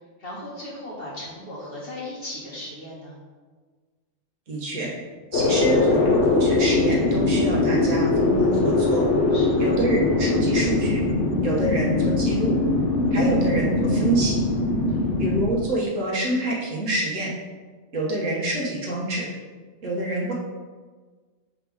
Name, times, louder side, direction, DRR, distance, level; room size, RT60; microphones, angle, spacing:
voice 1, 0.2-3.2 9.3-9.7 14.9-15.1, left 1 dB, 50° left, -6 dB, 2.1 m, -37 dB
voice 2, 4.5-4.9 5.3-9.1 9.6-11.0 11.4-12.6 13.1-14.4 15.2-17.3 17.9-19.3 19.8-20.3, right 1 dB, 90° right, -3 dB, 1.8 m, -26 dB
sound 1, 5.3-15.4, left 2 dB, 70° left, 1.1 m, -21 dB
6.2 x 4.9 x 3.6 m, 1.4 s
omnidirectional pair, 1.3 m